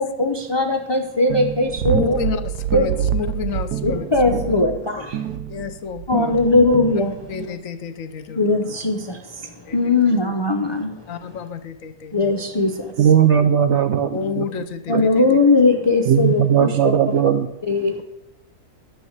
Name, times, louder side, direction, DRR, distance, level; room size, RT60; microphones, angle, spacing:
voice 1, 0.0-2.2 2.7-2.9 3.8-5.2 6.1-7.2 8.4-10.9 12.1-12.9 14.9-16.7 17.7-18.0, left 3 dB, 40° left, 3 dB, 0.4 m, -19 dB
sound 1, 1.3-7.5, right 9 dB, 80° right, 1.3 m, -26 dB
voice 2, 1.9-4.6 5.5-6.4 7.3-8.8 9.7-9.8 11.1-12.3 14.1-15.2, left 6 dB, 65° left, 11 dB, 1.0 m, -30 dB
voice 3, 13.0-14.5 14.9-15.0 16.1-17.5, right 9 dB, 65° right, 9 dB, 0.7 m, -17 dB
10.5 x 6.4 x 8.0 m, 0.88 s
omnidirectional pair, 1.7 m